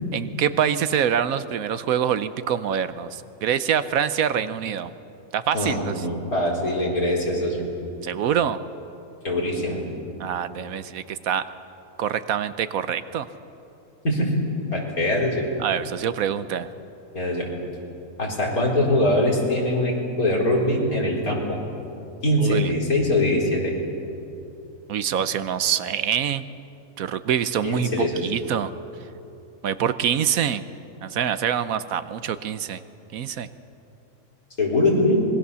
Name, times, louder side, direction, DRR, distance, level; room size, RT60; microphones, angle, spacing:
voice 1, 0.1-4.9 5.3-6.0 8.0-8.6 10.2-11.5 12.0-13.3 15.6-16.7 22.4-22.7 24.9-26.4 27.0-28.7 29.6-30.6 31.0-32.8 33.1-33.5, right 9 dB, 75° right, 13 dB, 1.2 m, -25 dB
voice 2, 5.5-7.7 9.2-9.8 14.0-14.3 14.7-15.4 17.1-17.5 18.2-21.6 22.2-23.7 27.6-28.3 34.6-35.2, left 1 dB, 80° left, -2 dB, 4.8 m, -22 dB
25.5 x 21.5 x 7.0 m, 2.8 s
omnidirectional pair, 1.5 m